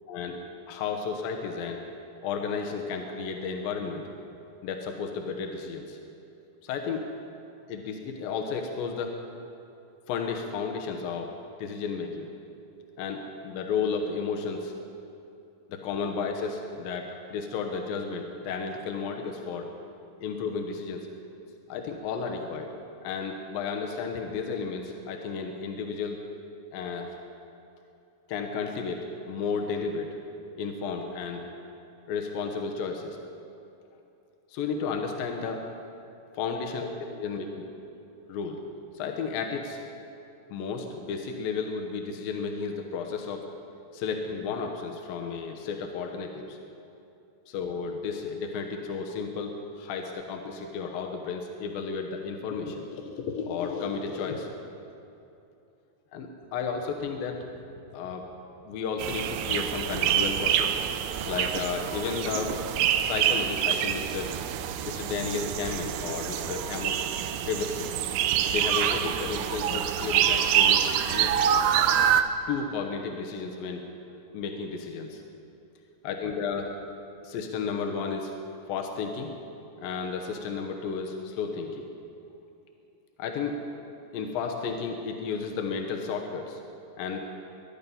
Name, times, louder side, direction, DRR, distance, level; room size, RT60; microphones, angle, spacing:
voice 1, 0.1-0.4 0.7-1.8 2.2-4.1 4.6-6.0 6.6-7.0 7.7-9.2 10.1-11.3 11.6-12.3 13.0-14.7 15.7-19.7 20.2-21.1 21.7-22.7 23.0-26.2 26.7-27.1 28.3-30.2 30.6-31.5 32.1-33.2 34.5-35.6 36.4-36.9 37.2-37.6 38.3-38.6 38.9-39.8 40.5-43.5 43.9-46.6 47.5-54.5 56.1-57.4 57.9-58.3 58.7-60.8 61.2-62.6 63.0-64.3 64.8-67.0 67.4-67.9 68.5-71.4 72.5-73.9 74.3-75.2 76.0-76.7 77.2-78.3 78.7-79.3 79.8-81.9 83.2-83.6 84.1-86.6 87.0-87.3, left 5 dB, 80° left, 3 dB, 2.8 m, -33 dB
sound 1, 59.0-72.2, right 9 dB, 80° right, 2.3 m, -26 dB
22.5 x 10.5 x 5.5 m, 2.7 s
omnidirectional pair, 4.0 m